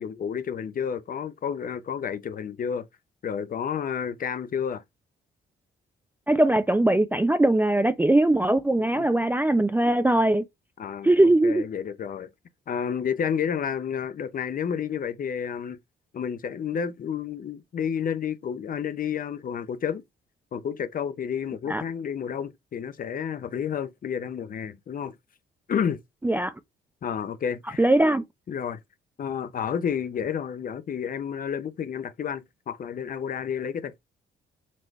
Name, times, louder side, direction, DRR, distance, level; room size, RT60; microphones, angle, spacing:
voice 1, 0.0-2.9 3.2-4.8 8.9-9.1 10.8-12.3 12.7-15.8 16.1-20.0 20.5-25.1 25.7-26.0 27.0-27.9 28.5-28.8 29.2-34.0, left 7 dB, 45° left, 0.6 m, -30 dB
voice 2, 6.3-10.4 11.0-11.6 21.7-21.8 26.2-26.5 27.8-28.2, right 1 dB, 10° right, 0.3 m, -21 dB
4.2 x 3.3 x 3.1 m
cardioid pair, 90°, 20 cm